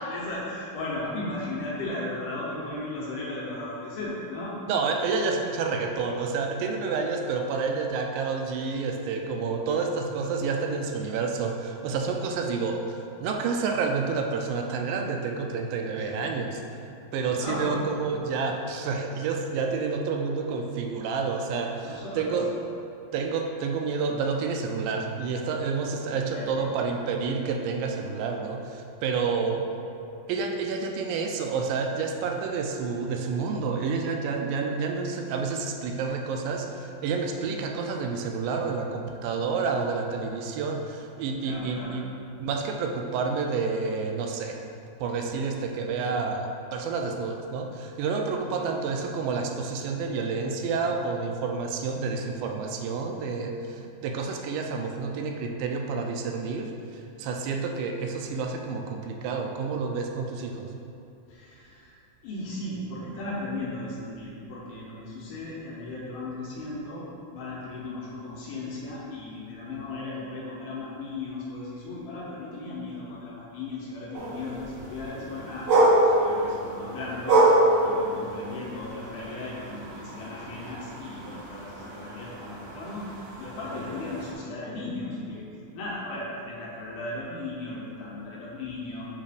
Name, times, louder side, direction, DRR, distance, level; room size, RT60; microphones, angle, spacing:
voice 1, 0.0-4.5 16.0-16.3 17.3-17.9 21.8-22.4 26.1-26.7 41.4-42.0 48.5-48.7 61.3-62.0 62.2-75.7 76.0-77.5 77.8-89.1, left 2 dB, 70° left, -6 dB, 2.4 m, -36 dB
voice 2, 4.7-16.6 17.1-22.5 23.1-29.7 30.3-42.1 42.4-44.6 45.0-60.7, right 4 dB, 80° right, 3 dB, 2.2 m, -29 dB
sound 1, 74.1-84.3, right 1 dB, 65° right, 1.8 m, -26 dB
7.4 x 3.2 x 4.9 m, 2.7 s
omnidirectional pair, 4.1 m